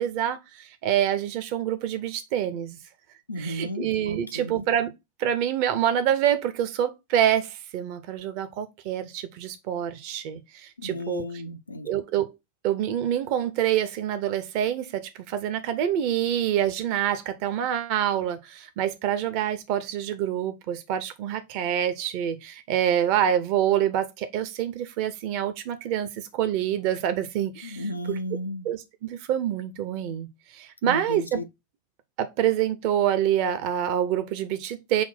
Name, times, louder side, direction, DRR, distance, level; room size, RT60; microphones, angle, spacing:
voice 1, 0.0-2.8 3.4-4.9 5.2-11.2 11.8-12.3 12.6-28.2 28.7-30.3 30.5-31.4 32.2-35.0, right 10 dB, 45° right, 0.6 m, -26 dB
voice 2, 3.3-4.7 10.8-11.9 27.6-28.7 30.8-31.4, left 1 dB, 80° left, 0.5 m, -34 dB
5.8 x 2.1 x 4.1 m
figure-of-eight pair, 90°, 0 cm